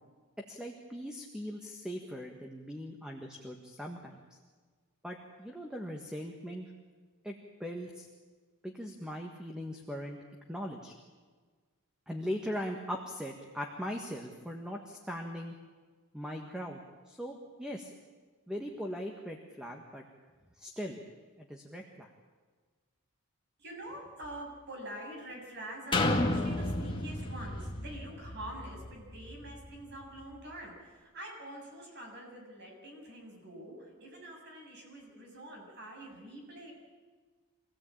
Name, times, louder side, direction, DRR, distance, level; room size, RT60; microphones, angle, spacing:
voice 1, 0.5-4.4 5.0-6.7 7.2-7.3 7.6-8.1 8.6-10.2 10.5-10.9 12.1-15.5 16.1-17.9 18.5-20.0 20.6-21.0 21.4-22.1, equal, 5° right, 2 dB, 1.6 m, -40 dB
voice 2, 23.6-36.7, right 1 dB, 50° right, 0 dB, 7.2 m, -46 dB
sound 1, 25.9-29.7 30.2-30.3, left 2 dB, 20° left, 2.1 m, -32 dB
25.5 x 17.0 x 8.7 m, 1.5 s
head